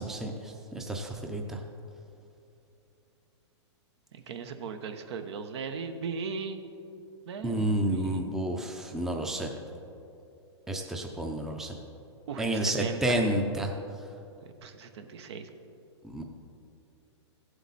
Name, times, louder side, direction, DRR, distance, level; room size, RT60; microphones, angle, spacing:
voice 1, 0.0-1.6 7.4-9.5 10.7-11.8 12.4-13.7 16.0-16.2, right 1 dB, 5° right, 2 dB, 0.6 m, -30 dB
voice 2, 4.1-6.6 7.3-8.3 12.3-13.2 14.6-15.5, right 5 dB, 65° right, 8 dB, 1.0 m, -38 dB
15.0 x 8.0 x 4.1 m, 2.7 s
hypercardioid pair, 145°, 15 cm